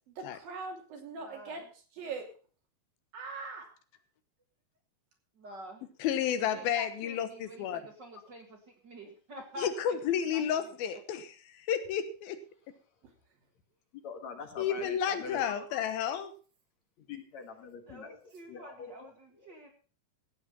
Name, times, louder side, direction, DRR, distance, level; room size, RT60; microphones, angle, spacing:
voice 1, 0.1-1.6 1.9-2.3 3.1-3.7, right 4 dB, 75° right, 2 dB, 4.5 m, -41 dB
voice 2, 1.2-1.7 5.4-5.8 6.4-10.0 10.3-10.4 10.8-11.0 17.9-19.7, right 1 dB, 35° right, 3 dB, 2.1 m, -48 dB
voice 3, 6.0-7.8 9.6-12.4 14.6-16.3, left 9 dB, 85° left, 10 dB, 3.0 m, -31 dB
voice 4, 14.0-15.4 16.1-16.2 17.1-18.1 18.5-18.9, left 5 dB, 55° left, 5 dB, 2.6 m, -43 dB
15.0 x 8.6 x 5.5 m, 0.39 s
omnidirectional pair, 4.1 m